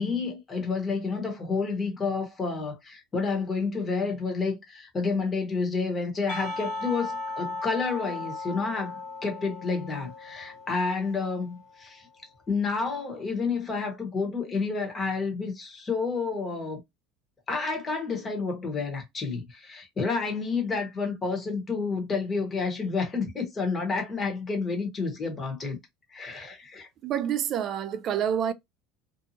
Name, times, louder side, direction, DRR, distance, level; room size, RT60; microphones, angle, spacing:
voice 1, 0.0-12.0 12.5-16.8 17.5-25.8 26.1-26.9, left 4 dB, 25° left, 1.1 m, -30 dB
Percussion / Church bell, 6.3-11.5, left 2 dB, 65° left, 1.4 m, -37 dB
voice 2, 27.0-28.5, right 9 dB, 45° right, 0.4 m, -27 dB
2.6 x 2.3 x 2.7 m
supercardioid pair, 130°, 0 cm